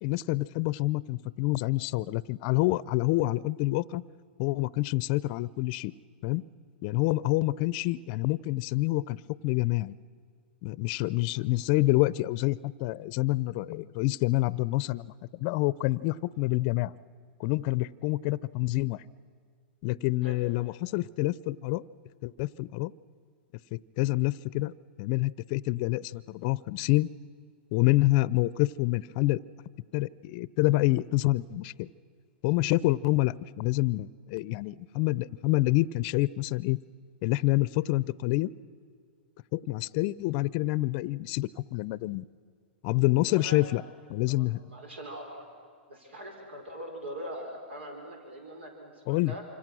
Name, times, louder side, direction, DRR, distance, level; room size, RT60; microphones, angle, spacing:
voice 1, 0.0-4.0 4.4-5.9 6.2-6.4 6.8-9.2 9.4-9.9 10.6-16.9 17.4-19.0 19.8-21.8 22.2-22.9 23.7-24.7 25.0-27.1 27.7-29.4 29.9-31.9 32.4-36.8 37.2-38.5 39.5-42.2 42.8-43.8 44.1-44.6 49.1-49.3, left 19 dB, 45° left, 19 dB, 0.6 m, -27 dB
voice 2, 43.3-43.6 44.3-45.5 45.9-49.4, equal, 90° right, 3 dB, 5.0 m, -42 dB
28.0 x 25.5 x 6.2 m, 2.2 s
hypercardioid pair, 130°, 6 cm